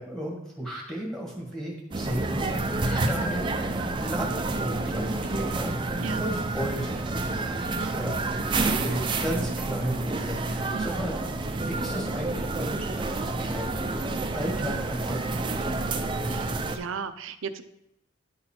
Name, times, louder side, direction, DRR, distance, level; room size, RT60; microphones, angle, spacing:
voice 1, 0.0-11.1 11.5-15.9, right 1 dB, 5° left, -3 dB, 1.5 m, -35 dB
sound 1, 1.9-16.8, right 2 dB, 25° right, 0.4 m, -29 dB
voice 2, 6.0-6.3 7.8-8.2 10.7-11.0 16.3-17.6, right 5 dB, 80° right, 11 dB, 0.5 m, -36 dB
10.5 x 4.0 x 4.3 m, 0.84 s
head